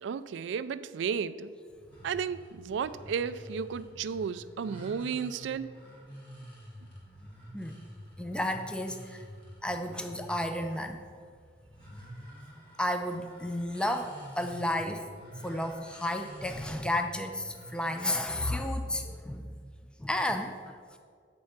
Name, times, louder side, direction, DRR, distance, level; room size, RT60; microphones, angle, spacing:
voice 1, 0.0-1.5 2.0-5.7, right 6 dB, 85° right, 14 dB, 0.3 m, -33 dB
sound 1, 1.7-18.4, equal, 25° left, 1.9 m, -49 dB
voice 2, 8.2-9.2 9.6-11.0 12.8-15.1 15.4-19.6 20.0-21.0, left 1 dB, 5° left, 6 dB, 0.3 m, -32 dB
8.5 x 4.4 x 5.8 m, 2.1 s
head